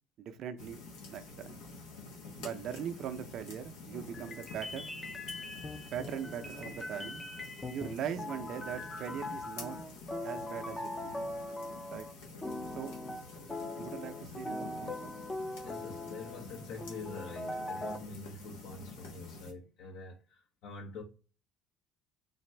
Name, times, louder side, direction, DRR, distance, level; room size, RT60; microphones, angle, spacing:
voice 1, 0.2-0.8 1.1-1.6 2.4-4.9 5.9-7.2 7.7-9.8 10.2-11.2 11.9-12.1 12.8-12.9 13.8-15.2, right 8 dB, 60° right, 0.5 m, -40 dB
sound 1, 0.6-19.5, left 3 dB, 90° left, 1.0 m, -49 dB
sound 2, 3.9-12.1 12.4-18.0, left 2 dB, 20° left, 0.6 m, -41 dB
voice 2, 15.6-21.0, left 3 dB, 70° left, 1.1 m, -46 dB
4.1 x 2.5 x 3.2 m
cardioid pair, 105°, 0 cm